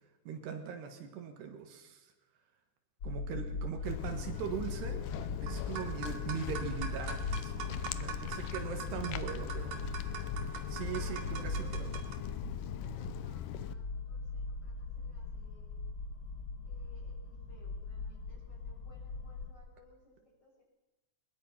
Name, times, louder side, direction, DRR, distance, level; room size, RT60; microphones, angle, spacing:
voice 1, 0.3-2.1 3.0-5.1 5.4-10.0 10.7-11.9, right 7 dB, 75° right, 6 dB, 3.6 m, -41 dB
sound 1, 3.0-19.5, left 3 dB, 65° left, 1.2 m, -40 dB
Walk footsteps, 3.8-13.7, left 12 dB, 90° left, 1.8 m, -42 dB
sound 2, 3.8-12.1, right 5 dB, 55° right, 3.6 m, -45 dB
voice 2, 6.0-6.3 8.1-8.6 10.9-12.4 12.8-15.8 16.6-20.6, left 1 dB, 25° left, -2 dB, 6.4 m, -61 dB
22.0 x 21.5 x 5.8 m, 1.1 s
omnidirectional pair, 4.9 m